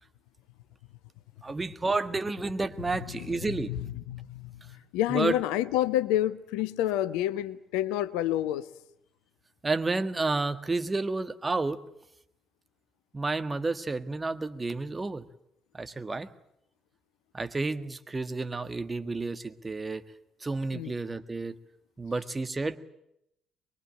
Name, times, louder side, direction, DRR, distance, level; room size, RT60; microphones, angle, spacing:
voice 1, 1.4-3.7 5.1-5.4 9.6-11.8 13.1-15.2 15.7-16.3 17.3-20.0 20.4-21.6 22.0-22.8, right 3 dB, 25° right, 10 dB, 1.7 m, -30 dB
voice 2, 3.7-8.7 20.7-20.9, left 13 dB, 65° left, 14 dB, 0.9 m, -29 dB
23.5 x 23.0 x 9.0 m, 0.79 s
figure-of-eight pair, 45°, 0 cm